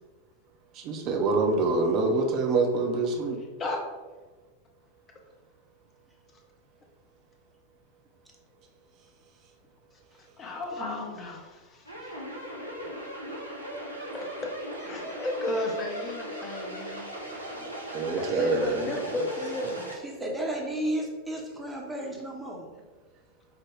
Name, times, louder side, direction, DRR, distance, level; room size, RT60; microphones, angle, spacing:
voice 1, 0.7-3.4 17.9-19.3 19.6-19.8, right 3 dB, 35° right, 3 dB, 0.6 m, -26 dB
voice 2, 10.4-11.8 14.1-14.3 14.8-17.1 17.4-17.7 18.1-19.9, left 2 dB, 25° left, 1 dB, 0.7 m, -34 dB
sound 1, 11.9-20.0, right 1 dB, 90° right, 0.6 m, -38 dB
voice 3, 20.0-22.7, right 1 dB, 5° right, -2 dB, 0.8 m, -33 dB
4.8 x 2.2 x 3.2 m, 1.3 s
figure-of-eight pair, 90°, 0 cm